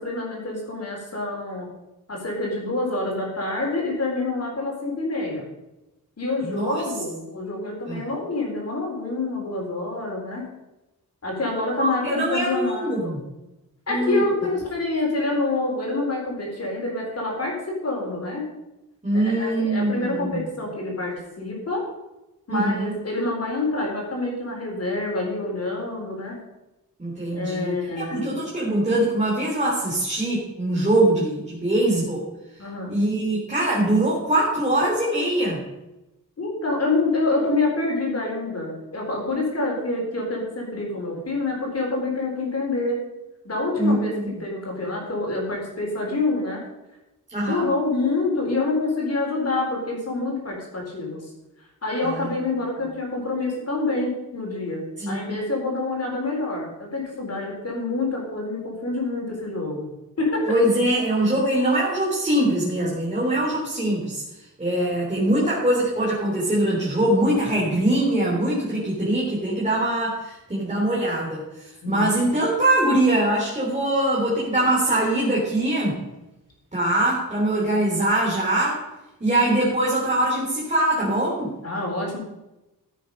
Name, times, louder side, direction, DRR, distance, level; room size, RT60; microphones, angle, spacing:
voice 1, 0.0-1.7 2.1-5.5 6.2-10.5 11.2-13.2 13.9-18.4 19.1-21.9 22.5-26.4 27.3-28.3 32.6-33.0 36.4-43.0 43.4-44.1 44.4-46.6 47.4-51.3 51.8-54.8 55.1-59.8 60.2-60.5 71.8-72.1 81.6-82.2, left 2 dB, 40° left, -1 dB, 4.2 m, -27 dB
voice 2, 11.8-13.2 13.9-14.2 19.0-20.4 22.5-22.9 27.0-32.2 32.9-35.6 43.8-44.3 47.3-47.6 52.0-52.3 55.0-55.3 60.5-64.2 64.6-76.0 76.7-78.8 79.2-81.5, right 1 dB, 20° right, -6 dB, 3.3 m, -22 dB
15.0 x 8.4 x 5.5 m, 0.98 s
wide cardioid pair, 160°, 36 cm